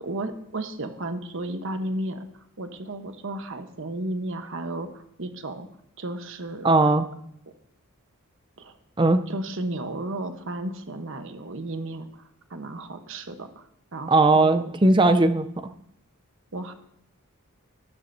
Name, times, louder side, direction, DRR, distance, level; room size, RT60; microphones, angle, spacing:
voice 1, 0.0-5.7 6.0-6.7 8.6-8.8 9.3-12.2 12.5-13.6 13.9-14.7 16.5-16.7, right 1 dB, 60° right, 7 dB, 1.0 m, -33 dB
voice 2, 6.6-7.0 9.0-9.2 14.1-15.4, right 2 dB, 20° right, 9 dB, 0.5 m, -18 dB
13.5 x 12.5 x 2.7 m, 0.73 s
head